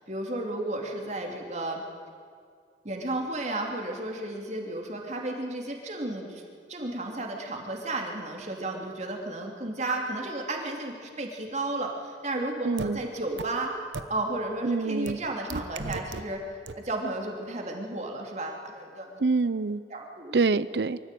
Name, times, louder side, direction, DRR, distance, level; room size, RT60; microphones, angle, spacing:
voice 1, 0.1-1.8 2.8-6.4 6.7-13.7 14.1-16.4 16.7-19.2 19.9-20.4, right 2 dB, 40° right, 1 dB, 3.0 m, -33 dB
voice 2, 12.6-13.0 14.6-15.2 19.2-19.8 20.3-21.0, right 4 dB, 65° right, 18 dB, 0.6 m, -25 dB
sound 1, 12.8-12.9 13.4-13.5 13.9-14.0 15.1-15.2 15.5-16.2 16.7-16.8, right 3 dB, 85° right, 1.0 m, -33 dB
24.0 x 14.0 x 9.2 m, 2.1 s
head